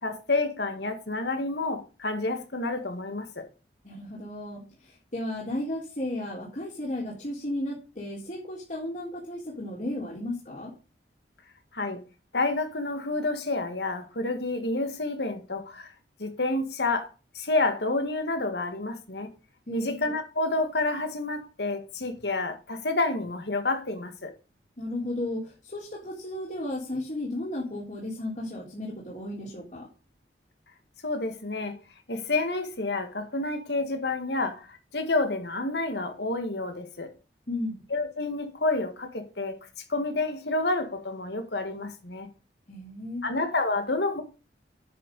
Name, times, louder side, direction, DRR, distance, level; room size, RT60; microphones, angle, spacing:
voice 1, 0.0-3.5 11.7-12.0 12.3-15.9 16.2-17.1 17.3-19.3 19.7-24.3 31.0-31.8 32.1-37.1 37.9-39.6 39.9-42.3 43.2-44.2, left 2 dB, 70° left, 1.9 m, -29 dB
voice 2, 3.8-10.7 19.7-19.9 24.8-29.9 37.5-37.8 42.7-43.3, left 1 dB, 45° left, 3.7 m, -34 dB
10.0 x 6.6 x 5.3 m
head